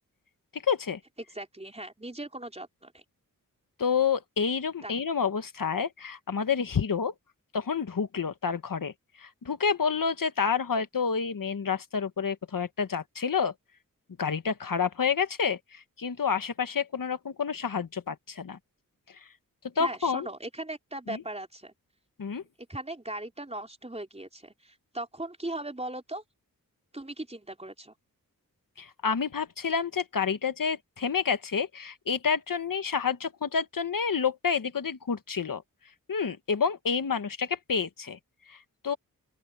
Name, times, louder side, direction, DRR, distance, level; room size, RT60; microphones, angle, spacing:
voice 1, 0.5-1.0 3.8-7.1 7.5-8.9 9.2-13.5 14.2-18.6 19.8-20.3 21.1-21.2 22.2-22.4 28.8-35.6 36.1-38.2 38.5-38.6 38.8-39.0, left 6 dB, 70° left, 1.4 m, -29 dB
voice 2, 1.3-3.0 4.8-4.9 19.8-21.7 22.6-26.2 26.9-27.9, right 1 dB, 20° right, 3.8 m, -38 dB
open air
wide cardioid pair, 65°, 35 cm